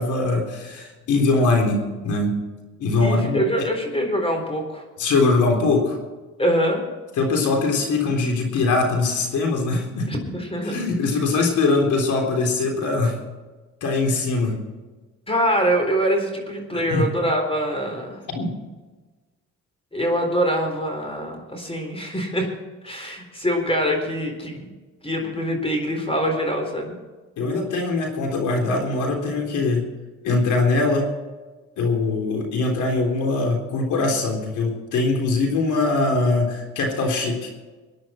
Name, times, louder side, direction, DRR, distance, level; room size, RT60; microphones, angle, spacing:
voice 1, 0.0-2.4 2.8-3.7 5.0-6.0 7.2-10.1 10.7-13.2 13.8-14.6 16.7-17.1 18.3-18.5 27.4-29.8 30.2-31.1 31.8-37.5, left 3 dB, 75° left, 2 dB, 3.8 m, -22 dB
voice 2, 3.0-4.8 6.4-6.8 10.1-10.8 15.3-18.2 19.9-22.5 22.8-24.6 25.0-26.9, equal, 20° left, 3 dB, 4.1 m, -24 dB
22.5 x 10.5 x 4.5 m, 1.3 s
cardioid pair, 95°, 30 cm